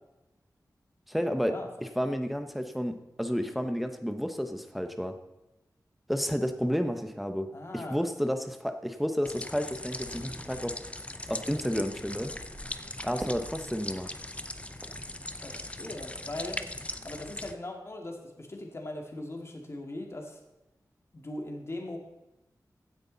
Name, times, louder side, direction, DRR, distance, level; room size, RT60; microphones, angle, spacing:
voice 1, 1.1-1.6 2.0-5.2 6.1-7.5 7.7-10.8 11.3-12.3 13.0-14.1, equal, ahead, 7 dB, 1.0 m, -31 dB
voice 2, 7.5-8.1 15.4-16.6 17.0-20.4 21.1-22.0, left 1 dB, 40° left, 2 dB, 2.2 m, -39 dB
sound 1, 9.2-17.5, left 1 dB, 20° left, 0.7 m, -40 dB
sound 2, 10.0-15.7, right 1 dB, 20° right, 1.7 m, -48 dB
16.0 x 9.9 x 4.1 m, 0.98 s
wide cardioid pair, 110°, 7 cm